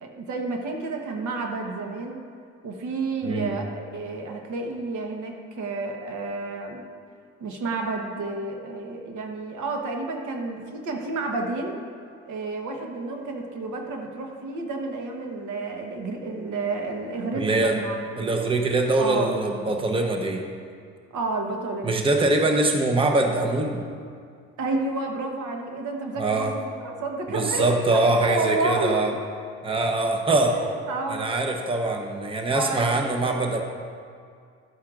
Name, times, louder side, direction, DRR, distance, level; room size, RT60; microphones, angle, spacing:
voice 1, 0.0-2.2 2.6-6.8 7.4-11.8 12.2-18.3 19.0-19.4 21.1-21.9 22.4-22.5 24.6-26.6 27.0-29.0 30.5-31.3 32.5-33.0, right 3 dB, 60° right, 2 dB, 1.2 m, -30 dB
voice 2, 3.2-3.5 17.3-17.8 18.2-20.4 21.8-23.8 26.1-26.5 27.3-29.1 29.6-30.6 31.1-33.6, right 2 dB, 15° right, 3 dB, 0.9 m, -23 dB
12.0 x 8.3 x 2.5 m, 2.2 s
supercardioid pair, 65°, 33 cm